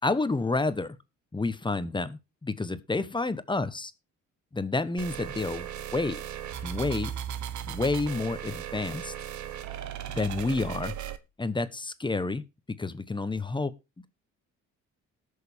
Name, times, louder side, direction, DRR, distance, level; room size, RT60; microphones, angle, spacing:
voice 1, 0.0-1.0 1.3-3.9 4.5-5.7 5.9-6.2 6.6-7.1 7.7-9.1 10.1-10.9 11.4-12.4 12.8-13.7, left 3 dB, 15° left, 1.0 m, -29 dB
sound 1, 5.0-11.2, right 10 dB, 75° right, 1.2 m, -37 dB
19.0 x 6.6 x 3.5 m
cardioid pair, 90°, 30 cm